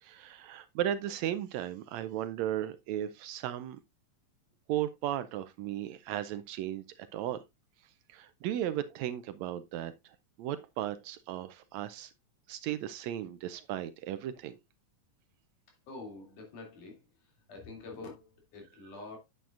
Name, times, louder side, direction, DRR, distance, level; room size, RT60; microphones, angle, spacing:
voice 1, 0.0-3.8 4.7-7.4 8.1-12.1 12.5-14.5, right 11 dB, 80° right, 1.7 m, -36 dB
voice 2, 15.9-19.2, left 3 dB, 85° left, 4.1 m, -47 dB
9.2 x 7.6 x 2.4 m
omnidirectional pair, 3.5 m